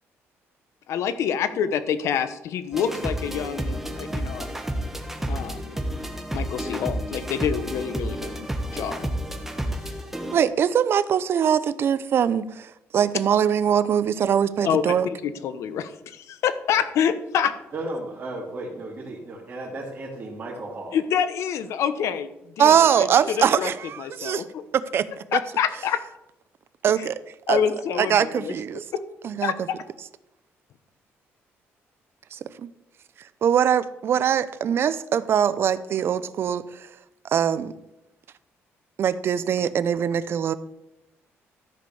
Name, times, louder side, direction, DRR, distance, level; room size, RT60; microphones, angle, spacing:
voice 1, 0.9-4.5 5.3-5.8 6.3-9.1 14.6-17.6 20.9-22.3 22.6-23.1 23.4-23.7 24.0-24.6 25.3-26.0 27.0-27.1 27.5-28.5 28.9-29.0 29.4-29.5, left 8 dB, 75° left, 12 dB, 1.0 m, -27 dB
sound 1, 2.7-10.4, right 1 dB, 5° right, 1.4 m, -30 dB
voice 2, 10.3-15.1 22.6-24.4 24.7-25.1 25.3-25.4 26.8-27.2 27.5-27.6 28.0-28.8 29.2-29.5 32.3-32.7 33.2-36.9 37.2-37.7 39.0-40.5, right 8 dB, 55° right, 15 dB, 0.6 m, -22 dB
voice 3, 17.7-21.0 22.7-22.9, right 2 dB, 35° right, -7 dB, 2.8 m, -34 dB
13.5 x 5.2 x 7.0 m, 0.89 s
cardioid pair, 120°, 5 cm